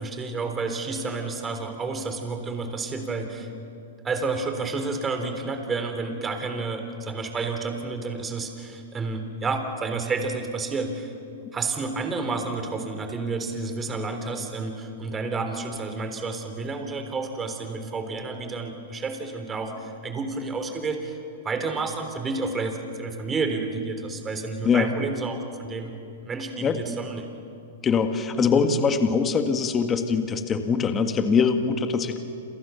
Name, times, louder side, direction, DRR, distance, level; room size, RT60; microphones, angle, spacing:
voice 1, 0.0-3.5 4.0-11.1 11.5-21.2 21.4-26.0 26.2-27.3, right 3 dB, 15° right, 6 dB, 3.6 m, -30 dB
voice 2, 27.8-32.2, left 5 dB, 20° left, 7 dB, 1.8 m, -22 dB
29.5 x 27.5 x 7.1 m, 2.6 s
hypercardioid pair, 145°, 0 cm